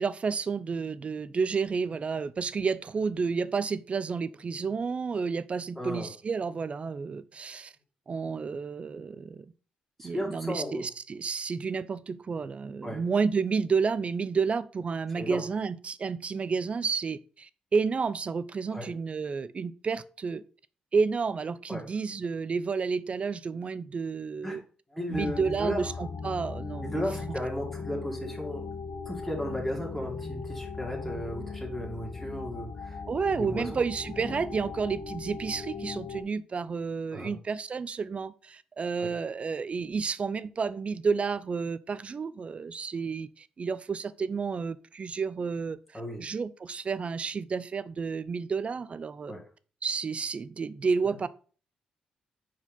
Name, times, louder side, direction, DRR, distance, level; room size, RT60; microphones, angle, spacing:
voice 1, 0.0-7.7 8.1-9.5 10.0-20.4 20.9-24.6 25.1-27.0 33.1-49.3 49.8-51.3, right 5 dB, 45° right, 0.5 m, -31 dB
voice 2, 5.8-6.1 10.0-10.9 12.8-13.0 15.1-15.5 18.7-18.9 21.7-21.8 24.4-24.6 24.9-25.8 26.9-28.6 29.0-33.0 33.3-33.9 37.1-37.3 39.0-39.1 45.9-46.2 49.3-49.4 51.0-51.2, equal, ahead, 2.5 m, -35 dB
sound 1, 25.1-36.2, left 4 dB, 50° left, 1.1 m, -38 dB
4.6 x 4.5 x 5.4 m
supercardioid pair, 60°, 3 cm